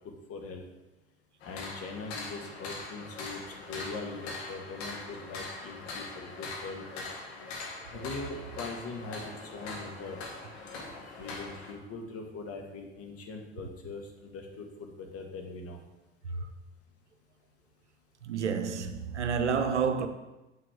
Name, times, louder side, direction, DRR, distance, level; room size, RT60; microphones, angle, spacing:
voice 1, 0.3-0.6 1.4-3.4 3.7-7.0 7.9-10.2 10.9-15.8, left 3 dB, 45° left, 1.7 m, -41 dB
sound 1, 1.4-11.7, left 3 dB, 70° left, 1.7 m, -42 dB
voice 2, 18.2-20.1, right 6 dB, 85° right, 0.7 m, -29 dB
8.9 x 7.5 x 3.5 m
figure-of-eight pair, 60°, 34 cm